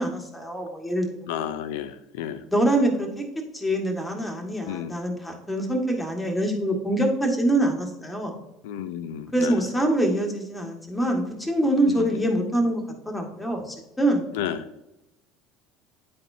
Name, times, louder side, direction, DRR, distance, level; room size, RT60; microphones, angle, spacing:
voice 1, 0.0-1.3 2.4-3.2 3.5-8.3 9.3-14.2, right 1 dB, 5° left, 1 dB, 1.6 m, -25 dB
voice 2, 1.3-2.4 4.7-5.0 8.6-9.7 11.8-12.2 14.3-14.7, left 10 dB, 80° left, 12 dB, 0.5 m, -32 dB
9.9 x 4.3 x 2.7 m, 0.89 s
hypercardioid pair, 75°, 0 cm